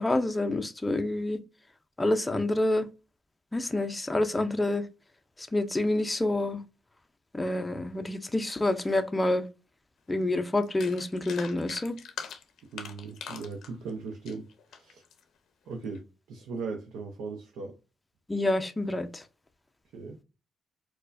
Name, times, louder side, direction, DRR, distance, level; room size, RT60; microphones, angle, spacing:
voice 1, 0.0-1.4 2.0-2.9 3.5-4.9 5.5-6.6 7.3-9.4 10.1-12.0 18.3-19.2, left 2 dB, 15° left, 0.4 m, -27 dB
sound 1, 10.2-10.3 10.6-15.2 15.7-16.0, left 7 dB, 70° left, 0.5 m, -42 dB
voice 2, 12.7-14.5 14.7-15.0 15.7-17.7 19.9-20.2, right 4 dB, 80° right, 0.6 m, -38 dB
4.4 x 2.1 x 2.5 m
cardioid pair, 90°, 0 cm